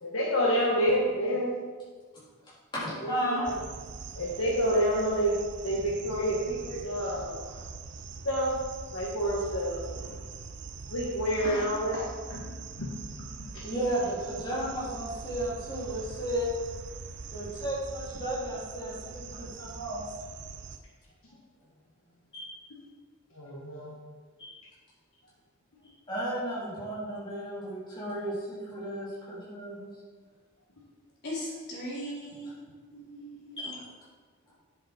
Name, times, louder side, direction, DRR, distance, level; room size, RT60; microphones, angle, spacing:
voice 1, 0.0-1.6 3.0-3.6 4.2-5.4 5.6-7.4 8.2-8.6 8.9-9.9 10.9-12.5 12.8-12.9 13.2-13.6 23.3-24.0, equal, 70° left, -4 dB, 1.6 m, -28 dB
voice 2, 2.7-3.4 7.5-7.6 9.9-10.2 13.6-16.5 17.3-20.0 22.3-22.5 24.4-24.6 26.1-29.9 33.6-33.7, right 1 dB, 20° left, -8 dB, 3.4 m, -34 dB
sound 1, 3.4-20.8, right 4 dB, 50° right, 0.6 m, -43 dB
voice 3, 31.2-32.5 32.9-33.7, equal, 50° left, -6 dB, 3.2 m, -38 dB
9.7 x 7.5 x 4.4 m, 1.5 s
head